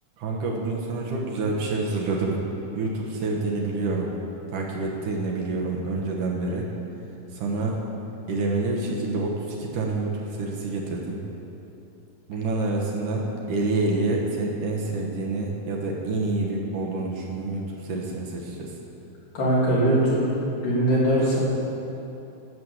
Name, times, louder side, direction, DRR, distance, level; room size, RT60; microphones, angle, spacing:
voice 1, 0.2-2.4 2.7-4.1 4.5-6.7 7.3-7.8 8.3-11.2 12.3-18.7, right 3 dB, 70° right, -1 dB, 2.6 m, -27 dB
voice 2, 19.3-21.4, right 1 dB, 70° left, -8 dB, 4.8 m, -21 dB
11.0 x 8.0 x 7.1 m, 2.9 s
omnidirectional pair, 4.1 m